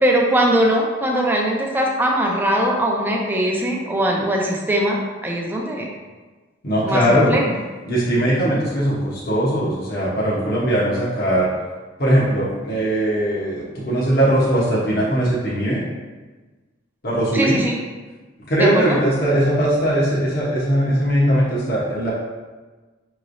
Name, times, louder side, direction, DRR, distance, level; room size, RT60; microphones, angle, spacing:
voice 1, 0.0-5.9 6.8-7.6 17.3-17.8 18.6-19.0, right 1 dB, 10° right, -1 dB, 0.5 m, -20 dB
voice 2, 6.6-7.3 7.9-11.5 12.0-15.8 17.0-17.6 18.4-22.1, right 1 dB, 50° left, -7 dB, 0.9 m, -20 dB
5.8 x 3.1 x 2.6 m, 1.3 s
head